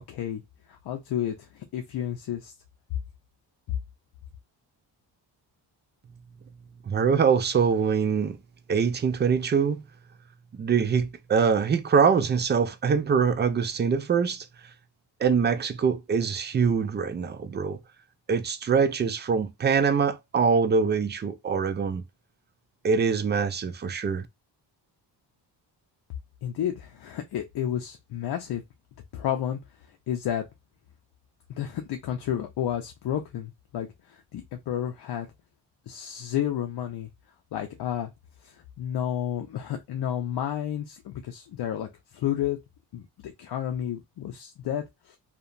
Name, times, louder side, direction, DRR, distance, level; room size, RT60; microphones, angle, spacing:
voice 1, 0.1-0.4 0.7-2.5 26.4-28.6 29.1-29.6 30.1-30.4 31.5-35.3 35.9-37.1 37.5-38.1 38.4-42.6 42.9-45.2, left 10 dB, 60° left, 0.6 m, -31 dB
voice 2, 6.9-8.4 8.7-9.8 10.5-14.5 15.2-17.8 18.3-22.0 22.8-24.3, right 6 dB, 25° right, 0.3 m, -24 dB
2.7 x 2.1 x 2.5 m
cardioid pair, 110°, 43 cm